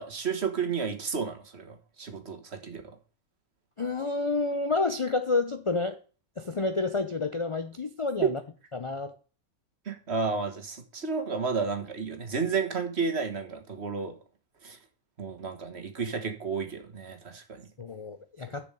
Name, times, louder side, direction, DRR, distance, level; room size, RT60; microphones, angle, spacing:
voice 1, 0.0-2.8 8.2-8.3 9.8-14.1 14.6-14.8 15.2-17.7, right 5 dB, 45° right, 1.7 m, -31 dB
voice 2, 3.8-6.0 6.4-8.4 8.7-9.1 17.8-18.7, left 3 dB, 55° left, 0.3 m, -29 dB
7.0 x 6.2 x 7.7 m
omnidirectional pair, 1.6 m